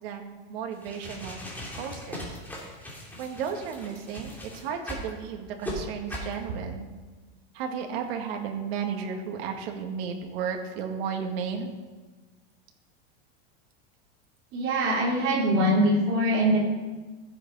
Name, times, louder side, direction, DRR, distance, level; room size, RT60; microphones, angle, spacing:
voice 1, 0.0-1.4 1.8-2.2 3.2-4.4 4.6-6.9 7.6-11.7, right 6 dB, 65° right, 3 dB, 2.0 m, -33 dB
sound 1, 0.7-5.1 5.6-5.8 6.1-6.3, left 1 dB, 5° left, 2.8 m, -39 dB
voice 2, 14.5-16.6, right 1 dB, 40° right, -2 dB, 3.6 m, -23 dB
14.5 x 8.1 x 5.5 m, 1.3 s
supercardioid pair, 150°, 33 cm